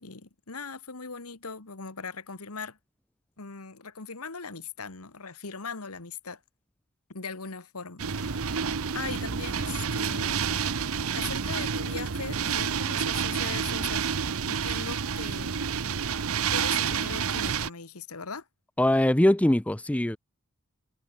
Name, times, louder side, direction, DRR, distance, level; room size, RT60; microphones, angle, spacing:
voice 1, 0.0-2.8 3.4-6.4 7.1-8.7 8.9-10.5 11.2-14.0 14.5-15.5 16.5-18.5, left 5 dB, 80° left, 1.8 m, -39 dB
sound 1, 8.0-17.7, right 6 dB, 70° right, 0.9 m, -29 dB
voice 2, 18.8-20.2, left 1 dB, 5° left, 0.4 m, -22 dB
head